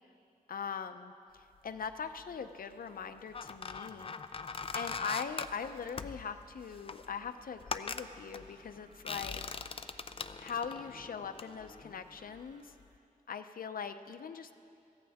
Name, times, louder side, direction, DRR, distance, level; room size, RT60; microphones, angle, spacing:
voice 1, 0.5-1.1 1.6-4.2 4.7-9.4 10.4-12.7 13.3-14.5, left 6 dB, 75° left, 9 dB, 0.7 m, -41 dB
sound 1, 1.8-2.4 3.0-12.5 12.8-13.0, left 5 dB, 40° left, 0.5 m, -42 dB
sound 2, 6.6-12.7, right 1 dB, 70° right, 3.1 m, -63 dB
23.5 x 16.0 x 3.6 m, 2.5 s
wide cardioid pair, 135°, 15 cm